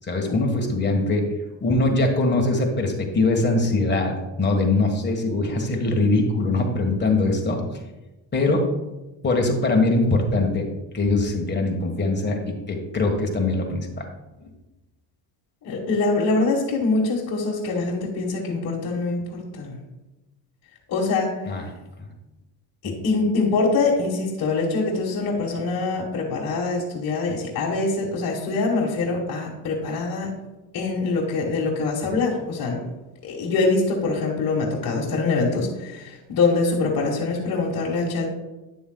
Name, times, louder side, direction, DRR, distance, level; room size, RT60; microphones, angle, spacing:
voice 1, 0.0-1.3 1.6-7.6 8.3-8.7 9.2-10.6 10.9-12.4 12.7-14.0 14.4-14.5 21.5-21.6 22.8-22.9 32.0-32.2, left 2 dB, 20° left, 2 dB, 1.6 m, -22 dB
voice 2, 15.6-19.8 20.9-21.3 22.8-30.3 30.7-32.8 33.2-38.3, left 3 dB, 50° left, -3 dB, 1.6 m, -24 dB
9.9 x 6.9 x 2.3 m, 1.0 s
cardioid pair, 100°, 46 cm